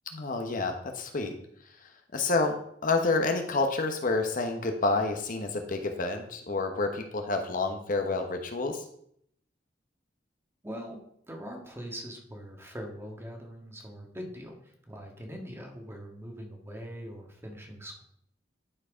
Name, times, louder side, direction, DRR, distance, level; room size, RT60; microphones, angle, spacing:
voice 1, 0.1-1.3 2.1-2.6 2.8-8.8, left 3 dB, 50° left, 5 dB, 0.9 m, -29 dB
voice 2, 10.6-11.0 11.3-18.0, equal, 15° right, 1 dB, 1.6 m, -42 dB
11.0 x 4.7 x 5.0 m, 0.69 s
head